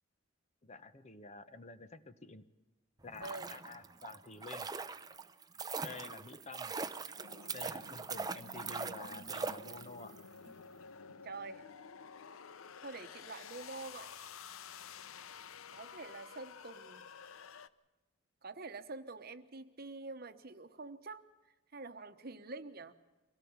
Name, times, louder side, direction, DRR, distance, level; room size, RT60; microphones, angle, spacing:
voice 1, 0.6-2.4 3.0-4.7 5.8-6.8 7.5-10.2, left 3 dB, 35° left, 11 dB, 1.0 m, -50 dB
sound 1, 3.0-10.2 10.5-10.6, right 4 dB, 20° right, 0.6 m, -42 dB
sound 2, 7.2-17.7, left 6 dB, 85° left, 0.7 m, -52 dB
voice 2, 11.2-11.7 12.8-14.2 15.7-17.0 18.4-21.2 21.7-22.9, right 3 dB, 50° right, 10 dB, 1.1 m, -46 dB
24.0 x 17.5 x 7.2 m, 1.1 s
head